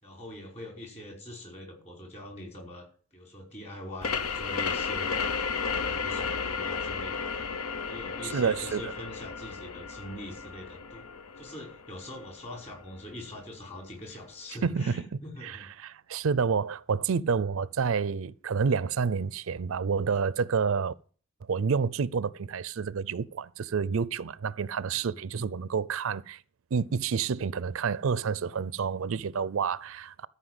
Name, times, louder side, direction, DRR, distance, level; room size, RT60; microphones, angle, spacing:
voice 1, 0.0-2.9 3.1-5.2 5.7-7.2 7.9-11.1 11.4-15.7 24.9-25.5, left 1 dB, 30° left, 5.1 m, -43 dB
sound 1, 4.0-13.4, left 5 dB, 85° left, 0.8 m, -34 dB
voice 2, 8.2-8.9 14.6-15.1 15.4-20.9 21.5-26.4 26.7-30.3, right 6 dB, 65° right, 0.4 m, -29 dB
13.5 x 5.6 x 7.8 m
head